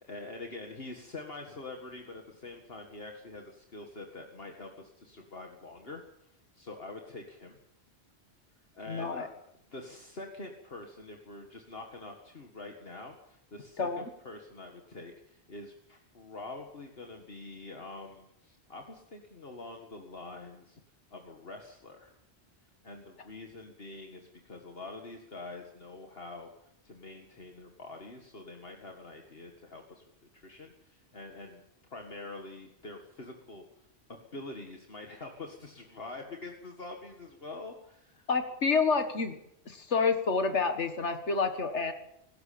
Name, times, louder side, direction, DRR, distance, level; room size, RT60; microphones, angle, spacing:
voice 1, 0.0-7.6 8.7-9.3 9.7-20.8 21.1-22.1 22.8-26.5 26.8-30.0 30.3-31.6 31.9-33.6 34.1-38.3, left 2 dB, 60° left, 2 dB, 2.2 m, -45 dB
voice 2, 8.9-9.3 13.8-14.0 38.3-39.3 39.7-41.9, left 4 dB, 85° left, 7 dB, 1.9 m, -28 dB
23.5 x 13.5 x 8.7 m, 0.78 s
omnidirectional pair, 1.2 m